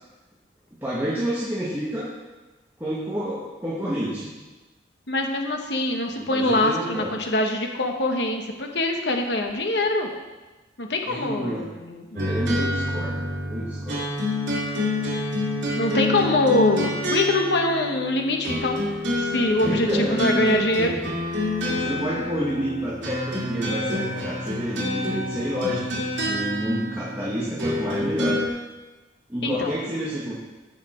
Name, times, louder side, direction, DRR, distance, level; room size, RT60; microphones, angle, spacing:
voice 1, 0.8-2.1 2.8-4.3 6.2-7.1 11.0-11.7 12.1-14.1 19.6-21.0 21.6-28.4 29.3-30.3, equal, 10° right, -9 dB, 1.8 m, -29 dB
voice 2, 5.1-10.1 10.8-12.0 15.8-18.8 19.2-21.0 29.4-29.7, left 1 dB, 65° left, 3 dB, 1.2 m, -24 dB
sound 1, 12.2-28.5, left 1 dB, 85° right, 2.7 m, -28 dB
15.5 x 5.8 x 4.5 m, 1.2 s
head